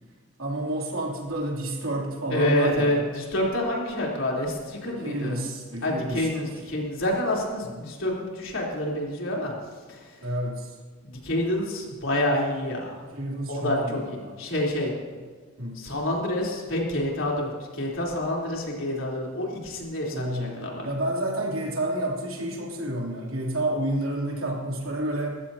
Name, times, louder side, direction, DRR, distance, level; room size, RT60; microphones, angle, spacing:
voice 1, 0.4-3.0 4.8-6.5 10.2-10.7 13.1-14.4 15.6-15.8 20.1-25.4, right 1 dB, 70° right, -1 dB, 3.1 m, -30 dB
voice 2, 2.3-5.4 5.8-9.5 9.9-10.3 11.0-13.0 13.5-14.9 15.7-20.9, left 1 dB, 65° left, -3 dB, 3.7 m, -28 dB
20.5 x 15.0 x 2.9 m, 1.5 s
head